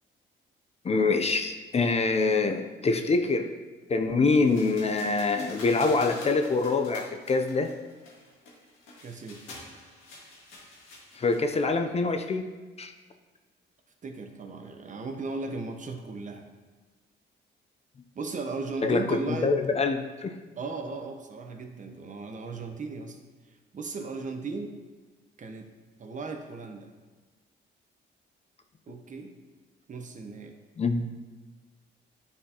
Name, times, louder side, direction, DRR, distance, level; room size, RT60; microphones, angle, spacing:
voice 1, 0.8-3.5 3.9-7.7 11.1-12.5 12.8-12.9 18.8-20.4 30.8-31.1, left 3 dB, 30° left, 6 dB, 0.5 m, -25 dB
sound 1, 4.5-11.8, left 2 dB, 90° left, 1.8 m, -46 dB
voice 2, 9.0-9.4 14.0-16.5 18.1-19.5 20.6-23.2 23.7-24.7 25.4-25.7 26.0-26.9 28.9-29.3 29.9-30.5, right 3 dB, 40° right, 4 dB, 0.8 m, -36 dB
10.0 x 4.2 x 2.8 m, 1.3 s
cardioid pair, 90°, 20 cm